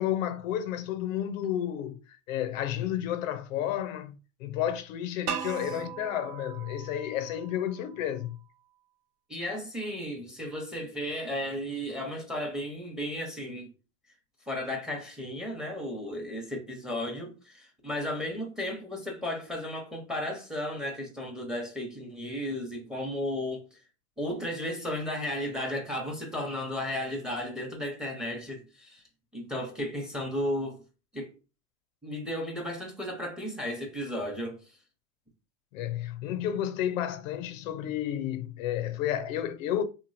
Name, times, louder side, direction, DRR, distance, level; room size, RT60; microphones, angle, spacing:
voice 1, 0.0-4.1 4.4-8.4 35.7-39.8, left 11 dB, 75° left, 0.5 m, -31 dB
sound 1, 5.3-8.2, right 8 dB, 60° right, 0.5 m, -39 dB
voice 2, 9.3-13.7 14.5-23.8 24.2-29.0 29.3-30.8 31.1-31.3 32.0-34.8, left 1 dB, ahead, 0.8 m, -34 dB
2.9 x 2.4 x 2.6 m
hypercardioid pair, 105°, 40 cm